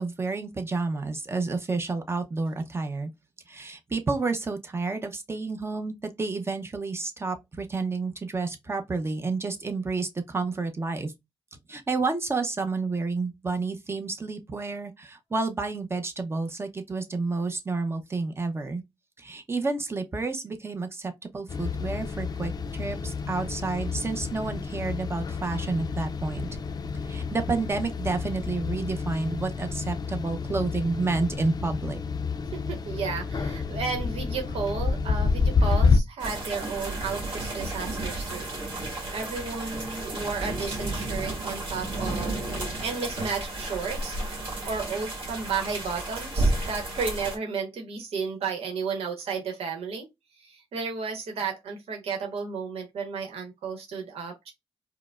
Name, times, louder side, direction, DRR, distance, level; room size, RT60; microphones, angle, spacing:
voice 1, 0.0-3.1 3.5-11.1 11.7-18.8 19.2-26.5 27.0-32.0, right 3 dB, 25° right, 0.7 m, -30 dB
sound 1, 21.5-36.0, left 4 dB, 40° left, 0.4 m, -29 dB
voice 2, 32.5-38.5 38.8-42.4 42.8-44.2 44.6-50.1 50.4-54.5, right 5 dB, 90° right, 1.0 m, -33 dB
sound 2, 36.2-47.4, right 2 dB, 60° right, 1.5 m, -32 dB
4.7 x 2.1 x 2.3 m
wide cardioid pair, 125°, 10 cm